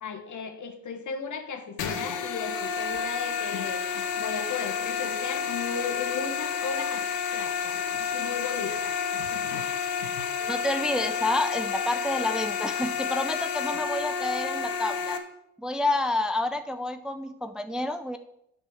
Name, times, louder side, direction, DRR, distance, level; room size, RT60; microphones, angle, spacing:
voice 1, 0.0-7.1 7.3-9.0 9.3-9.6, left 5 dB, 55° left, 6 dB, 1.5 m, -36 dB
sound 1, 1.8-15.2, left 6 dB, 75° left, 1.2 m, -30 dB
voice 2, 10.4-15.2 15.6-18.2, left 2 dB, ahead, 9 dB, 0.6 m, -29 dB
8.2 x 5.4 x 6.6 m, 0.78 s
supercardioid pair, 65°, 37 cm